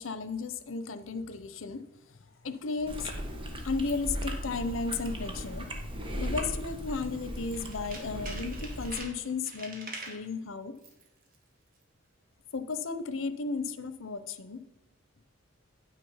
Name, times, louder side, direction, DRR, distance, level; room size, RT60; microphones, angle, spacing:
voice 1, 0.0-1.8 2.4-3.1 3.6-5.7 6.2-10.7 12.5-14.6, left 4 dB, 85° left, 12 dB, 0.7 m, -34 dB
Chewing mastication, 2.9-9.0, equal, 25° right, 1.4 m, -37 dB
Tools, 7.4-10.3 10.8-11.1 11.3-11.4, right 3 dB, 45° right, 1.8 m, -44 dB
9.2 x 6.3 x 5.6 m, 0.98 s
head